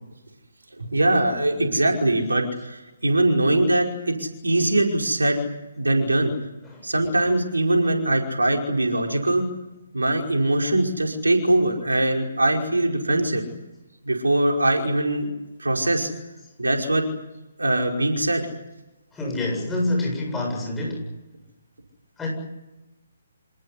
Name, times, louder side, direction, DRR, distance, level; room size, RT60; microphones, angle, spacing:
voice 1, 0.8-5.4 5.8-6.3 6.8-9.5 9.9-13.4 14.0-15.3 15.6-16.1 16.6-17.1 17.6-18.5, right 1 dB, 75° right, 2 dB, 5.2 m, -22 dB
voice 2, 19.1-21.0 22.2-22.3, left 2 dB, 10° left, -1 dB, 8.0 m, -27 dB
27.0 x 19.0 x 9.9 m, 1.0 s
figure-of-eight pair, 135°, 0 cm